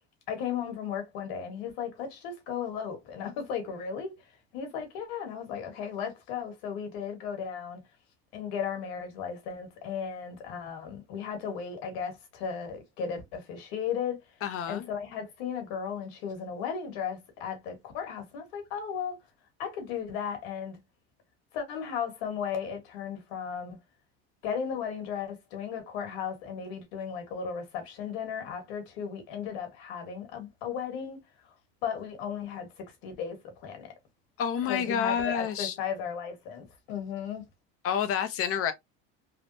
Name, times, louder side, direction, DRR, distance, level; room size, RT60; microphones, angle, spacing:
voice 1, 0.3-7.8 8.3-14.4 14.7-19.2 19.6-20.8 21.5-23.8 24.4-31.5 31.8-33.9 34.7-37.5, left 7 dB, 85° left, 1.6 m, -35 dB
voice 2, 14.4-14.9 34.4-35.7 37.8-38.7, left 8 dB, 45° left, 0.7 m, -28 dB
3.5 x 2.3 x 2.6 m
supercardioid pair, 115°, 31 cm